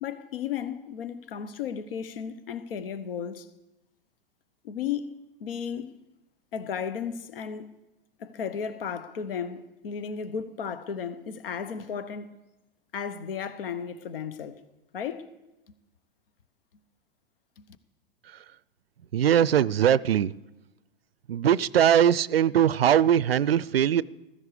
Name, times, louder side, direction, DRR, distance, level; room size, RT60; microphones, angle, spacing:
voice 1, 0.0-3.5 4.6-5.1 5.4-5.9 6.5-7.8 8.2-12.4 12.9-14.6 14.9-15.3 17.6-17.7, left 7 dB, 75° left, 0.9 m, -34 dB
voice 2, 19.1-20.3 21.3-24.0, right 9 dB, 90° right, 0.5 m, -21 dB
15.0 x 14.0 x 4.9 m
hypercardioid pair, 105°, 29 cm